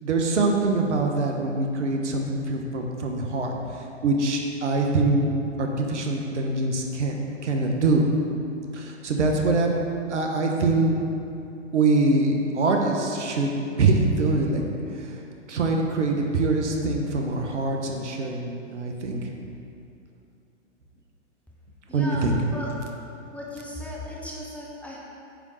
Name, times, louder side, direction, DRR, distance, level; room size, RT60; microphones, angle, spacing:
voice 1, 0.0-3.5 4.0-5.3 5.6-7.2 7.4-8.1 8.7-9.7 10.1-10.9 11.7-15.2 15.5-19.3 21.9-22.4, right 3 dB, 70° right, 1 dB, 1.3 m, -24 dB
voice 2, 21.9-22.7 23.3-25.0, left 1 dB, 5° left, -5 dB, 0.8 m, -36 dB
8.8 x 3.7 x 6.3 m, 2.7 s
figure-of-eight pair, 115°, 36 cm